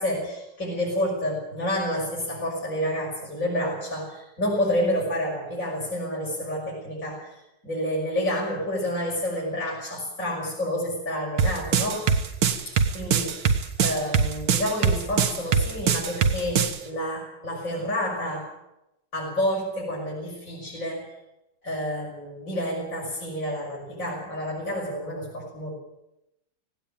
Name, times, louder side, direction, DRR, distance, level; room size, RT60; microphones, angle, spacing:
voice 1, 0.0-12.2 12.7-18.5 19.1-21.1 21.6-25.7, equal, 40° left, -4 dB, 6.2 m, -29 dB
sound 1, 11.4-16.8, right 6 dB, 75° right, 2.1 m, -22 dB
18.0 x 17.5 x 8.8 m, 0.87 s
omnidirectional pair, 2.3 m